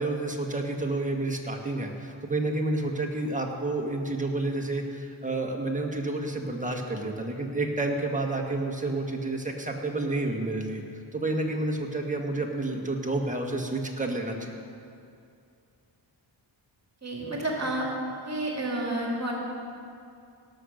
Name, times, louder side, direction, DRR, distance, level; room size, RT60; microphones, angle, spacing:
voice 1, 0.0-10.8 11.1-14.6, right 2 dB, 15° right, 1 dB, 1.8 m, -30 dB
voice 2, 17.0-17.9 18.2-19.3, right 1 dB, 35° right, -2 dB, 2.3 m, -30 dB
17.5 x 6.6 x 6.6 m, 2.5 s
wide cardioid pair, 75°, 47 cm